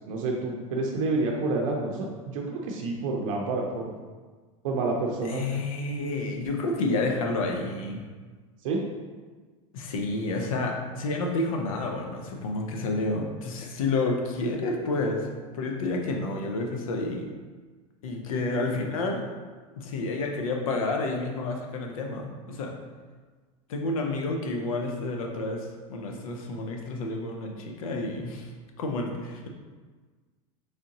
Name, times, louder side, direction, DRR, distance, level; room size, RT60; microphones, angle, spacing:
voice 1, 0.1-3.9 4.6-5.6 8.6-8.8 18.4-18.9, right 3 dB, 75° right, 0 dB, 0.6 m, -29 dB
voice 2, 5.2-8.0 9.7-15.3 15.5-17.2 18.0-19.2 19.8-22.7 23.7-28.5 28.8-29.5, left 2 dB, 85° left, 2 dB, 0.6 m, -30 dB
3.7 x 3.3 x 2.9 m, 1.4 s
supercardioid pair, 115°, 17 cm